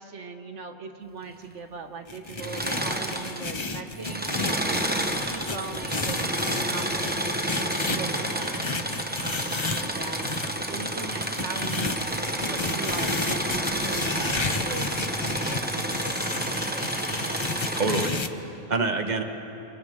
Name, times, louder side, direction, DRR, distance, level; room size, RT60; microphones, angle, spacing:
voice 1, 0.0-4.2 4.6-8.6 9.2-10.3 10.7-12.1 12.4-17.4, right 4 dB, 65° right, 6 dB, 1.4 m, -40 dB
sound 1, 2.1-10.5 11.2-18.3, left 3 dB, 30° left, 0.6 m, -33 dB
Engine / Mechanisms, 2.3-3.7 3.9-18.1, right 1 dB, 10° right, 1.0 m, -30 dB
voice 2, 17.7-19.2, right 3 dB, 35° right, 5 dB, 1.4 m, -27 dB
28.0 x 26.5 x 3.7 m, 3.0 s
omnidirectional pair, 1.3 m